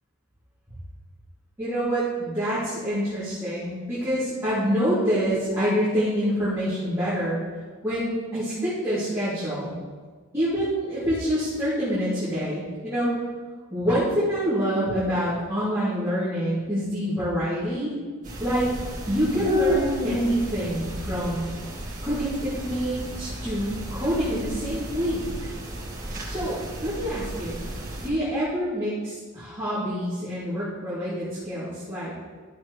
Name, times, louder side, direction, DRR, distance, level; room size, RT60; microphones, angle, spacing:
voice 1, 1.6-7.4 7.8-9.7 10.3-13.1 13.7-17.9 18.4-18.7 19.1-21.4 22.0-25.2 26.3-27.6 28.0-32.1, equal, 15° right, -14 dB, 3.0 m, -26 dB
sound 1, 18.2-28.1, equal, 35° right, 1.9 m, -32 dB
13.0 x 7.0 x 3.3 m, 1.5 s
head